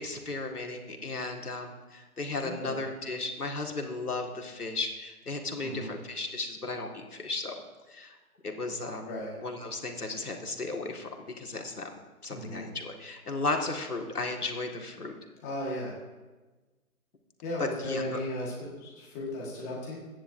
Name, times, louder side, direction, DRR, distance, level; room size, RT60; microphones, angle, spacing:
voice 1, 0.0-7.6 7.9-8.2 8.4-9.1 9.4-11.9 12.2-15.2 17.6-18.2, left 3 dB, 85° left, 2 dB, 2.1 m, -35 dB
voice 2, 2.4-2.8 5.6-5.9 9.1-9.4 12.3-12.7 15.4-16.0 17.4-20.0, left 1 dB, 10° left, -4 dB, 1.7 m, -36 dB
24.0 x 10.0 x 2.7 m, 1.2 s
figure-of-eight pair, 160°, 44 cm